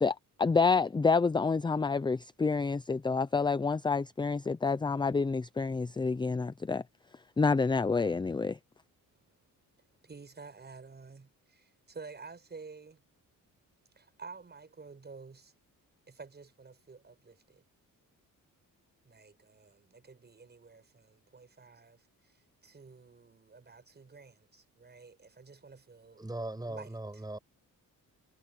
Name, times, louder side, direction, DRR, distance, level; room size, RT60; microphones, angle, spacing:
voice 1, 0.0-6.8 7.4-8.6, left 4 dB, 15° left, 0.5 m, -28 dB
voice 2, 10.0-13.0 14.0-15.5 16.1-17.6 19.0-26.2 26.6-27.2, right 4 dB, 30° right, 6.9 m, -51 dB
voice 3, 26.2-27.4, right 2 dB, 10° right, 6.1 m, -39 dB
cardioid pair, 115°, 35 cm